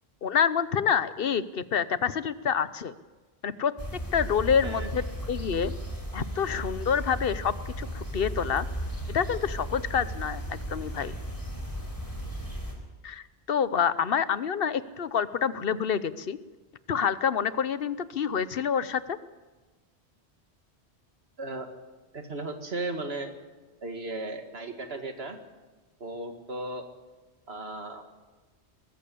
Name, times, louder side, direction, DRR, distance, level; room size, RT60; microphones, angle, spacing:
voice 1, 0.2-2.9 3.4-3.7 4.1-5.7 6.1-8.7 9.1-11.1 13.0-16.4 16.9-19.2, left 7 dB, 60° left, 15 dB, 1.0 m, -27 dB
sound 1, 3.8-12.7, equal, 20° left, 4.3 m, -35 dB
voice 2, 4.6-4.9 21.4-21.7 22.1-23.3 23.8-25.4 26.0-26.9 27.5-28.1, right 2 dB, 65° right, 6 dB, 2.3 m, -36 dB
22.0 x 14.0 x 8.5 m, 1.2 s
omnidirectional pair, 1.1 m